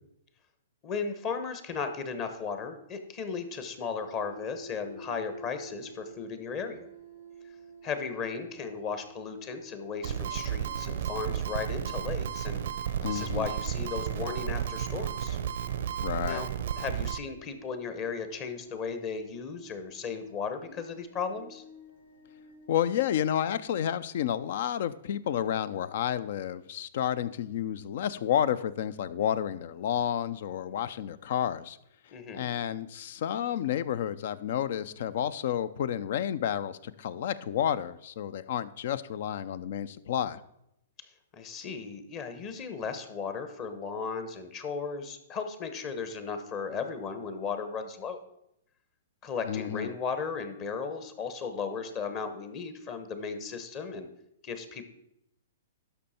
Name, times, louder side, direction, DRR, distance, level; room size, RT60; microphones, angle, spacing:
voice 1, 0.8-6.9 7.8-12.6 13.1-15.4 16.2-16.5 16.8-21.6 32.1-32.5 41.3-48.2 49.2-54.1 54.4-54.9, left 5 dB, 35° left, 9 dB, 1.1 m, -36 dB
sound 1, 4.1-23.7, equal, 90° left, 2.3 m, -52 dB
sound 2, 10.0-17.2, right 9 dB, 65° right, 0.6 m, -32 dB
voice 2, 13.0-13.5 16.0-16.5 22.7-31.8 32.3-40.4 49.4-49.9, left 10 dB, 60° left, 17 dB, 0.5 m, -30 dB
12.0 x 5.5 x 4.3 m, 0.81 s
hypercardioid pair, 125°, 0 cm